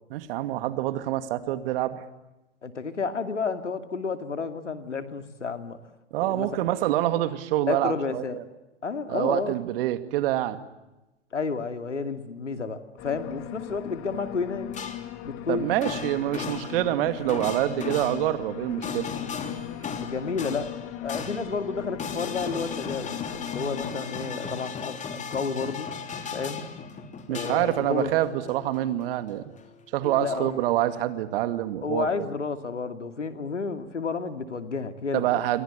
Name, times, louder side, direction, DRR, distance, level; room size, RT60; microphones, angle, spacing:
voice 1, 0.1-2.0 6.1-8.4 9.1-10.6 15.5-19.1 27.3-29.5 29.9-32.1 35.1-35.6, right 14 dB, 55° right, 10 dB, 2.5 m, -26 dB
voice 2, 2.6-5.8 6.2-6.5 7.7-8.4 8.8-9.6 11.3-14.7 15.2-15.7 20.0-20.7 21.0-25.9 26.3-26.7 27.3-28.1 30.2-30.5 31.8-35.4, left 5 dB, 85° left, 9 dB, 2.5 m, -31 dB
sound 1, 13.0-23.9, left 12 dB, 35° left, 2.0 m, -39 dB
sound 2, 14.7-15.3 15.7-29.7 30.0-30.7, left 6 dB, 20° left, 3.3 m, -37 dB
29.0 x 23.5 x 8.4 m, 1.0 s
figure-of-eight pair, 105°, 35 cm